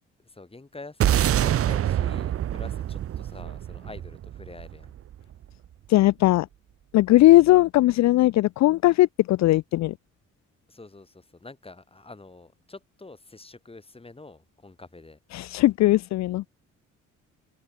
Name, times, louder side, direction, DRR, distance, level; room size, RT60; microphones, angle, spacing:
voice 1, 0.2-4.9 10.7-15.2, left 3 dB, 20° left, 5.4 m, -46 dB
sound 1, 1.0-5.5, right 11 dB, 50° right, 0.7 m, -26 dB
voice 2, 5.9-6.5 6.9-9.9 15.3-16.4, left 16 dB, 65° left, 0.4 m, -19 dB
cardioid pair, 90°, 30 cm